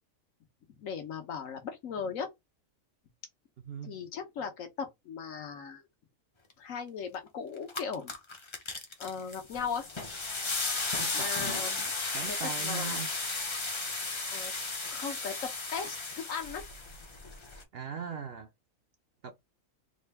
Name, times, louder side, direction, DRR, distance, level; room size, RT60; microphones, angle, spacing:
voice 1, 0.8-2.3 3.8-5.8 6.6-8.1 9.0-9.9 11.1-11.9 12.3-13.0 14.3-14.5 14.9-16.6, left 6 dB, 70° left, 1.2 m, -38 dB
voice 2, 3.6-4.0 11.0-11.7 12.1-13.1 17.7-18.5 19.2-19.3, right 7 dB, 60° right, 0.7 m, -40 dB
sound 1, 7.1-7.2 7.6-17.6, left 3 dB, 30° left, 0.6 m, -35 dB
3.7 x 2.3 x 3.3 m
omnidirectional pair, 1.4 m